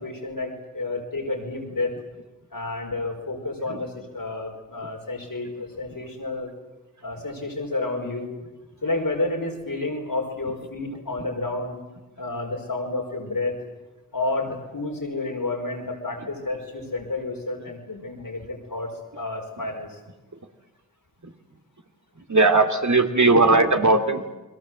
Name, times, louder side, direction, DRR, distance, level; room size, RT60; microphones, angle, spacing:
voice 1, 0.0-2.0 2.5-6.5 7.0-8.3 8.8-11.8 12.2-13.6 14.1-18.9 19.1-20.0, left 2 dB, 90° left, 1 dB, 5.2 m, -30 dB
voice 2, 22.3-24.3, right 3 dB, 60° right, 6 dB, 2.6 m, -18 dB
29.0 x 22.5 x 7.7 m, 1.1 s
wide cardioid pair, 45°, 33 cm